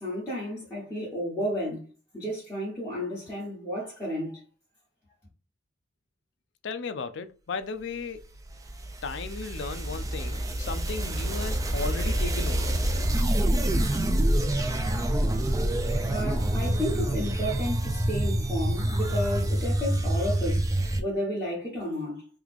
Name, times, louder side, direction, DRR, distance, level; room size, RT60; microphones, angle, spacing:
voice 1, 0.0-1.9 2.1-4.4 16.0-20.7 21.0-22.3, equal, 10° left, 1.3 m, -32 dB
voice 2, 6.6-8.3 9.0-12.7, left 4 dB, 60° left, 0.4 m, -35 dB
sound 1, 8.1-21.0, right 1 dB, 15° right, 0.3 m, -27 dB
3.2 x 2.4 x 3.5 m
head